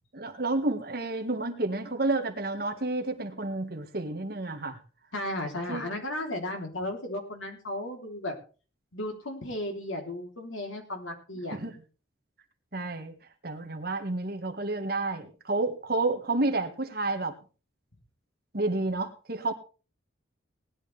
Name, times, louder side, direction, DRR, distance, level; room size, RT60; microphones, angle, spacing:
voice 1, 0.1-4.8 5.7-5.9 11.5-11.7 12.7-13.1 13.4-17.3 18.5-19.5, right 2 dB, 50° right, 5 dB, 1.7 m, -30 dB
voice 2, 5.1-8.3 8.9-11.6, left 1 dB, 85° left, 3 dB, 3.4 m, -34 dB
19.0 x 11.0 x 3.4 m, 0.36 s
head